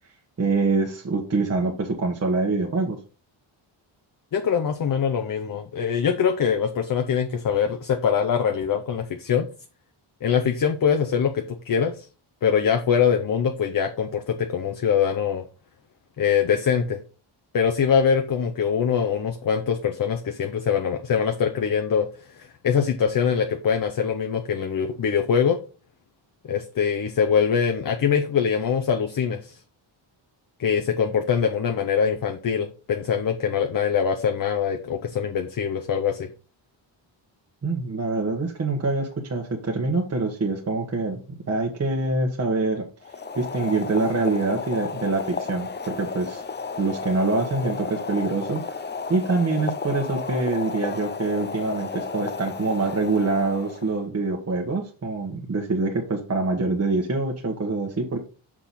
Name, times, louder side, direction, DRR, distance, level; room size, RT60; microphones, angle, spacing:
voice 1, 0.4-3.0 37.6-42.9 43.3-46.4 46.8-48.8 49.1-58.2, right 3 dB, 30° right, 0 dB, 1.3 m, -25 dB
voice 2, 4.3-9.5 10.2-12.1 12.4-15.4 16.2-17.0 17.5-22.1 22.4-25.6 26.5-29.6 30.6-36.3, left 7 dB, 45° left, 6 dB, 0.8 m, -23 dB
Boiling, 43.0-54.0, left 5 dB, 25° left, 0.4 m, -33 dB
6.6 x 6.0 x 4.2 m, 0.36 s
wide cardioid pair, 140°, 49 cm